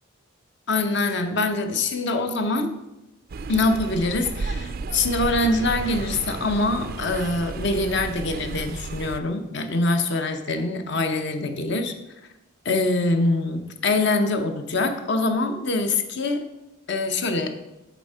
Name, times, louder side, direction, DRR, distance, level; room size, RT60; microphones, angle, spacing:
voice 1, 0.7-2.7 3.5-11.9 12.6-16.4 16.9-17.5, left 2 dB, 55° left, 7 dB, 0.7 m, -24 dB
sound 1, 3.3-9.2, right 4 dB, 45° right, 0.3 m, -33 dB
8.3 x 3.6 x 5.5 m, 0.96 s
head